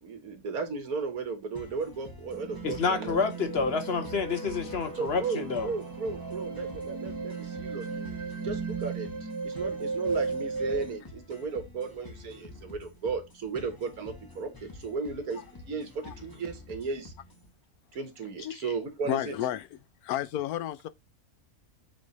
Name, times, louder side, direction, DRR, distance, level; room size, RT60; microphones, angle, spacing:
voice 1, 0.0-3.2 5.0-17.1 17.9-19.3, right 4 dB, 80° right, 1.8 m, -35 dB
sound 1, 1.6-17.5, left 2 dB, 15° left, 1.1 m, -49 dB
sound 2, 2.3-11.0, right 4 dB, 15° right, 1.6 m, -35 dB
voice 2, 2.6-5.7, left 5 dB, 50° left, 1.0 m, -28 dB
voice 3, 19.1-19.7 20.0-20.9, left 12 dB, 90° left, 1.1 m, -31 dB
7.3 x 3.4 x 4.1 m
omnidirectional pair, 1.5 m